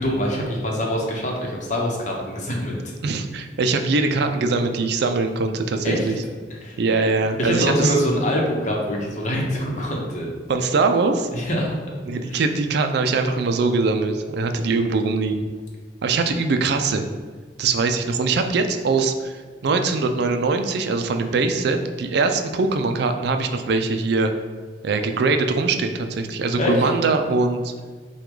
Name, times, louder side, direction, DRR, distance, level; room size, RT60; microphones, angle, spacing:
voice 1, 0.0-2.8 5.8-6.1 6.5-6.8 7.4-10.3 11.3-11.8 12.3-12.4 26.6-26.9, equal, 45° left, -1 dB, 0.9 m, -24 dB
voice 2, 3.0-6.1 6.8-7.9 10.5-11.3 12.1-15.5 16.0-17.1 17.6-24.3 24.8-27.7, right 3 dB, 65° right, 6 dB, 0.4 m, -22 dB
5.9 x 2.3 x 3.8 m, 1.5 s
head